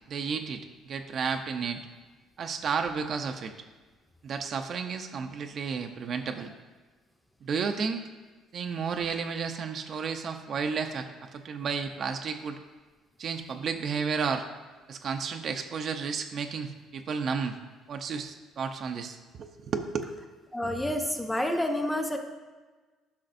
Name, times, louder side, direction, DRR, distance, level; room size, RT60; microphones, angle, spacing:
voice 1, 0.1-1.8 2.4-3.5 4.2-6.5 7.4-8.0 8.5-12.6 13.2-14.5 14.9-17.5 17.9-20.1, right 5 dB, 50° right, 6 dB, 0.6 m, -32 dB
voice 2, 20.5-22.2, left 1 dB, 10° left, 4 dB, 0.8 m, -29 dB
11.5 x 5.8 x 2.6 m, 1.3 s
cardioid pair, 100°, 0 cm